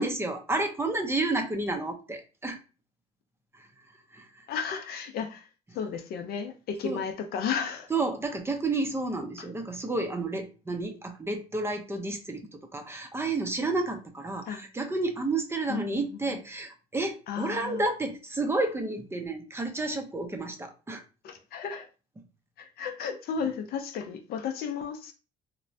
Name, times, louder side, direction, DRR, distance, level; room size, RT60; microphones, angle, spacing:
voice 1, 0.0-2.6 3.5-3.7 4.1-4.5 6.8-7.0 7.9-21.0, right 2 dB, 15° right, 0.5 m, -31 dB
voice 2, 4.5-5.5 5.7-7.9 9.4-9.5 14.4-14.6 15.7-16.4 17.3-17.8 21.2-21.9 22.6-25.1, left 6 dB, 65° left, 0.5 m, -34 dB
3.1 x 2.1 x 2.5 m
cardioid pair, 110°, 17 cm